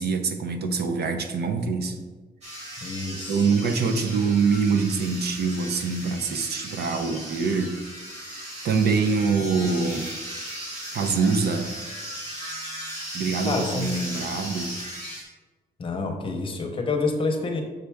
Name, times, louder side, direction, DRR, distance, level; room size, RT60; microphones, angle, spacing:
voice 1, 0.0-2.0 2.8-2.9 3.3-7.7 8.2-10.1 10.9-11.7 13.1-14.8, right 5 dB, 70° right, 7 dB, 0.7 m, -25 dB
sound 1, 2.4-15.2, equal, 40° right, 2.0 m, -37 dB
voice 2, 2.8-3.4 13.5-13.9 14.3-14.4 15.8-17.6, left 3 dB, 30° left, 3 dB, 0.8 m, -28 dB
6.6 x 5.7 x 3.4 m, 1.3 s
wide cardioid pair, 175°, 17 cm